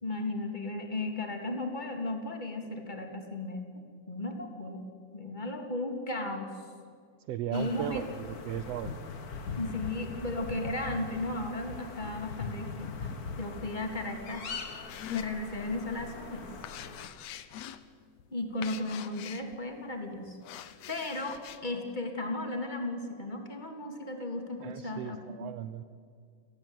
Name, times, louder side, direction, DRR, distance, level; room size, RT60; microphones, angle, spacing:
voice 1, 0.0-3.7 4.1-4.8 5.1-6.5 7.5-8.0 9.6-13.1 13.4-14.5 15.1-16.4 18.3-25.5, left 2 dB, 15° left, 4 dB, 2.6 m, -35 dB
voice 2, 7.3-9.0 24.6-25.8, right 10 dB, 80° right, 12 dB, 1.4 m, -36 dB
sound 1, 7.5-17.1, left 4 dB, 50° left, 1.1 m, -41 dB
sound 2, 14.9-15.8 16.2-19.7 20.3-21.6, left 10 dB, 65° left, 1.8 m, -44 dB
29.0 x 19.0 x 9.2 m, 2.2 s
omnidirectional pair, 4.0 m